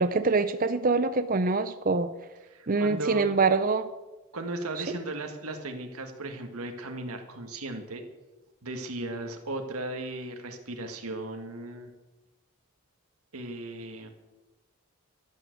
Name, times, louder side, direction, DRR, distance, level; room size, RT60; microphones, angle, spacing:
voice 1, 0.0-2.1 2.7-3.9 4.8-4.9, right 4 dB, 40° right, 11 dB, 0.6 m, -25 dB
voice 2, 2.5-3.3 4.3-8.0 8.6-11.9 13.3-14.1, right 2 dB, 80° right, 4 dB, 1.7 m, -36 dB
12.0 x 11.0 x 7.9 m, 1.1 s
head